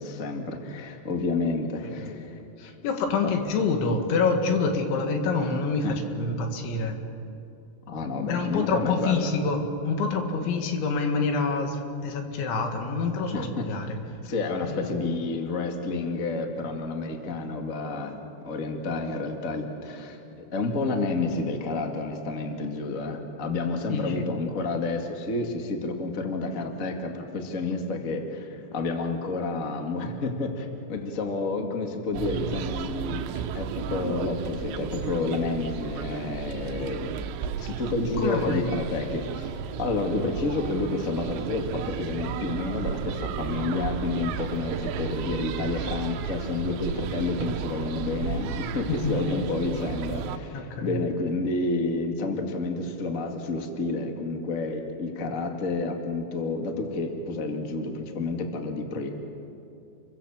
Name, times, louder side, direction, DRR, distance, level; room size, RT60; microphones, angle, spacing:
voice 1, 0.0-2.4 3.2-3.3 5.8-6.0 7.9-9.3 13.3-13.7 14.2-18.2 18.4-33.2 33.5-37.1 37.6-59.1, left 3 dB, 35° left, 3 dB, 1.4 m, -30 dB
voice 2, 1.8-2.1 2.6-6.9 8.3-14.0 14.6-14.9 23.9-24.3 38.2-38.7 48.9-49.2 50.5-51.0, left 4 dB, 85° left, 4 dB, 4.4 m, -27 dB
sound 1, 32.1-50.4, right 7 dB, 80° right, 3.3 m, -33 dB
29.5 x 23.5 x 7.4 m, 2.7 s
omnidirectional pair, 5.1 m